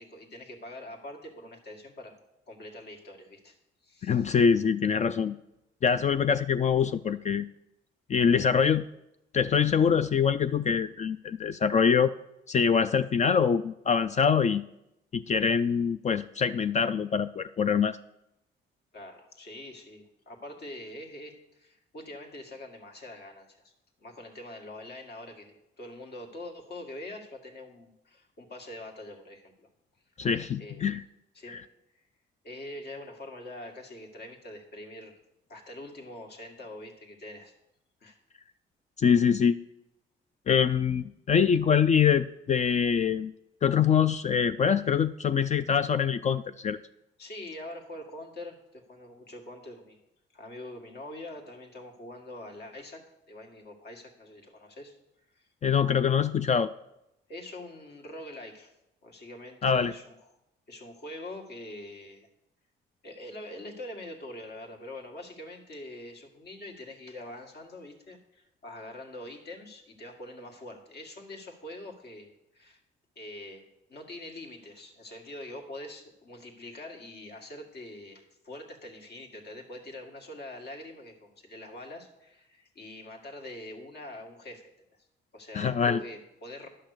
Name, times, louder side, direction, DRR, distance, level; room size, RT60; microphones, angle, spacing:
voice 1, 0.0-2.2 2.5-3.6 3.8-4.3 18.9-23.7 24.0-29.7 30.6-30.9 31.3-31.7 32.4-35.2 35.5-37.5 38.0-38.2 47.2-50.0 50.3-53.0 53.3-54.9 55.4-55.5 57.3-58.7 59.0-60.3 60.7-62.3 63.0-72.8 73.2-84.7 85.3-86.7, left 1 dB, 55° left, 2 dB, 2.1 m, -44 dB
voice 2, 4.0-5.3 5.8-7.5 8.1-8.8 9.3-12.1 12.5-14.6 15.1-18.0 30.2-31.0 31.5-31.6 39.0-39.6 40.5-43.3 43.6-46.8 55.6-56.7 59.6-59.9 85.5-86.0, left 7 dB, 35° left, 12 dB, 0.4 m, -24 dB
11.0 x 5.9 x 6.6 m, 0.87 s
cardioid pair, 90°, 20 cm